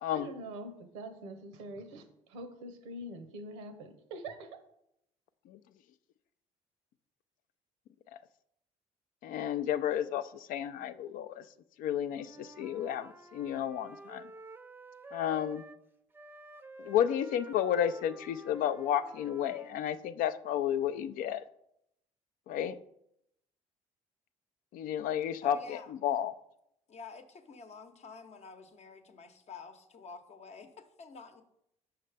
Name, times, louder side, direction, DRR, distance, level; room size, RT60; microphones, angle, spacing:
voice 1, 0.1-4.6, right 1 dB, 90° right, 8 dB, 0.8 m, -44 dB
voice 2, 9.2-11.4 11.8-14.2 15.1-15.6 16.8-21.4 22.5-22.8 24.7-26.3, left 10 dB, 65° left, 12 dB, 0.4 m, -32 dB
Wind instrument woodwind instrument, 12.1-15.8 16.1-20.0, right 2 dB, 15° right, 0.5 m, -51 dB
voice 3, 25.2-25.9 26.9-31.4, left 4 dB, 45° left, 8 dB, 0.8 m, -49 dB
5.7 x 5.0 x 3.3 m, 0.77 s
hypercardioid pair, 65°, 15 cm